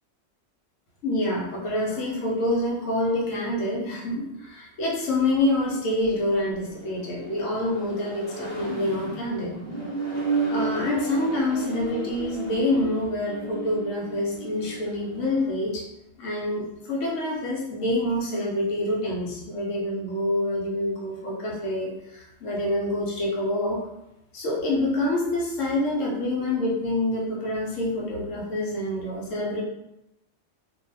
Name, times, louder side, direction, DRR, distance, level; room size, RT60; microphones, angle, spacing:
voice 1, 1.0-9.5 10.5-15.8 16.2-23.8 24.3-29.6, left 1 dB, 90° left, -3 dB, 1.2 m, -27 dB
Accelerating revving vroom, 5.1-15.5, right 3 dB, 15° left, 0.7 m, -33 dB
2.6 x 2.3 x 3.3 m, 0.87 s
omnidirectional pair, 1.3 m